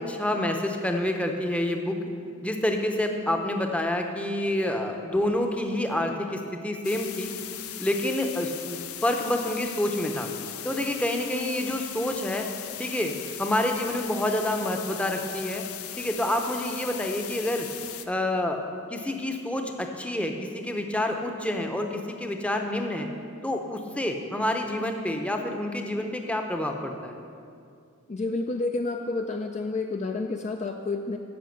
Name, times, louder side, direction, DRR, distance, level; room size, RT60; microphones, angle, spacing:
voice 1, 0.0-2.0 2.4-7.3 7.8-10.3 10.6-12.5 12.8-13.1 13.4-15.6 16.0-17.7 18.1-18.6 18.9-23.1 23.4-27.2, left 1 dB, 5° left, 3 dB, 0.7 m, -28 dB
sound 1, 6.8-18.0, left 11 dB, 75° left, 0.6 m, -38 dB
voice 2, 28.1-31.2, left 3 dB, 30° left, 4 dB, 0.4 m, -29 dB
10.5 x 6.4 x 7.9 m, 2.4 s
head